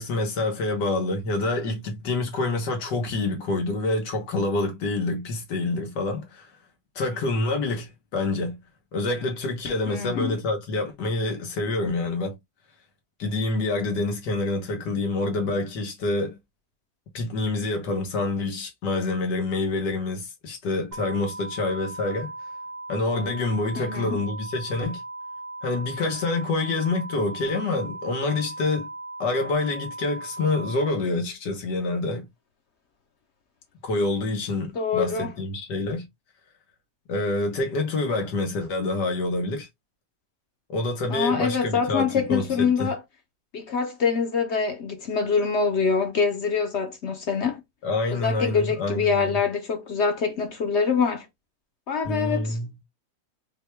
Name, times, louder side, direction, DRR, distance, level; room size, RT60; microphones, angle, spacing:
voice 1, 0.0-6.5 7.0-8.6 8.9-12.4 13.2-16.4 17.1-22.3 22.9-25.0 25.6-28.9 29.2-32.3 33.8-36.1 37.1-39.7 40.7-42.9 47.8-49.4 52.1-52.8, left 2 dB, 90° left, 1.8 m, -27 dB
voice 2, 9.9-10.4 23.8-24.2 34.7-35.3 41.1-43.0 43.5-47.6 48.1-51.3 51.9-52.6, left 5 dB, 55° left, 0.8 m, -25 dB
sound 1, 20.9-30.9, right 2 dB, 70° right, 1.9 m, -38 dB
4.6 x 2.3 x 3.1 m
omnidirectional pair, 1.8 m